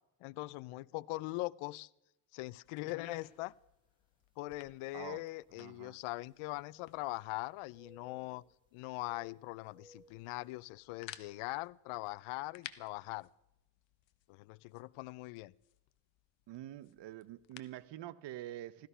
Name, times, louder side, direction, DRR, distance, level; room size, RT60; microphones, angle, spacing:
voice 1, 0.2-1.9 2.3-3.5 4.4-8.4 8.7-13.3 14.3-15.5, left 20 dB, 80° left, 0.6 m, -41 dB
sound 1, 2.6-17.9, left 13 dB, 65° left, 1.1 m, -57 dB
sound 2, 3.3-3.5 4.2-4.3 6.2-7.4 7.7-8.6 9.0-10.4, left 1 dB, 10° right, 1.0 m, -62 dB
voice 2, 5.6-6.0 16.5-18.9, right 13 dB, 60° right, 0.8 m, -46 dB
16.0 x 13.0 x 5.6 m
cardioid pair, 110°, 49 cm